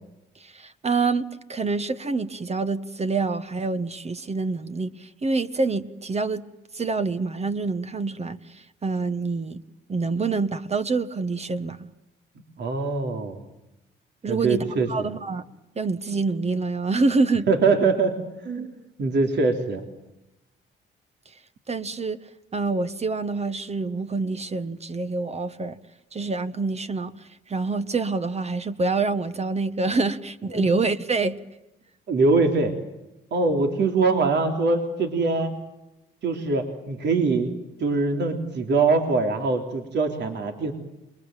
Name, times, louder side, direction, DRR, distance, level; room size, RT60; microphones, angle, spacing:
voice 1, 0.4-6.4 6.7-9.6 9.9-11.8 14.2-15.4 15.7-17.5 21.7-22.2 22.5-25.8 26.1-27.1 27.5-31.4, right 3 dB, 30° right, 11 dB, 1.4 m, -26 dB
voice 2, 12.6-13.4 14.3-15.1 17.5-18.2 18.4-18.7 19.0-19.8 30.5-30.7 32.1-32.8 33.3-35.5 36.2-40.7, right 3 dB, 60° right, 4 dB, 3.4 m, -23 dB
29.0 x 22.0 x 9.1 m, 0.93 s
cardioid pair, 90°, 20 cm